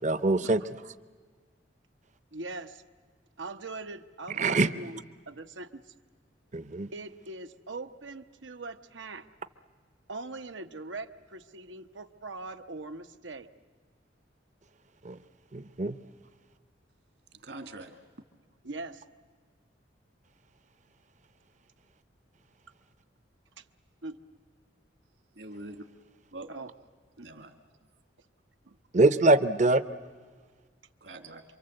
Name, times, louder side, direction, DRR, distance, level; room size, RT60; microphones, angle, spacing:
voice 1, 0.0-0.6 4.4-4.7 6.5-6.9 15.0-15.2 15.5-16.0 28.9-29.8, right 2 dB, 40° right, 13 dB, 0.7 m, -23 dB
voice 2, 2.3-2.8 3.4-5.9 6.9-9.3 10.1-13.5 18.6-19.0 23.6-23.7 24.0-24.2 26.5-26.7 27.2-27.3 28.7-28.8, right 3 dB, 90° right, 8 dB, 1.0 m, -41 dB
voice 3, 17.3-18.0 25.3-25.9 26.3-26.5 27.2-27.6 31.0-31.4, right 2 dB, 65° right, 6 dB, 2.1 m, -44 dB
27.5 x 25.0 x 7.9 m, 1.5 s
head